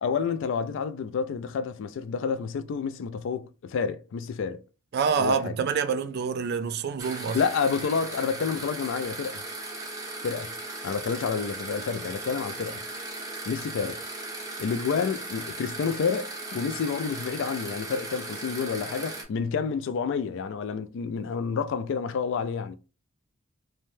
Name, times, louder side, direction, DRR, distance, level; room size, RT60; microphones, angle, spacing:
voice 1, 0.0-4.6 5.2-5.6 7.3-9.4 10.2-10.5 10.8-12.8 13.5-14.0 14.6-22.8, left 6 dB, 65° left, 0.3 m, -29 dB
voice 2, 4.9-7.4, right 6 dB, 50° right, 0.3 m, -27 dB
sound 1, 7.0-19.2, right 2 dB, 15° right, 0.6 m, -37 dB
2.7 x 2.1 x 3.1 m
head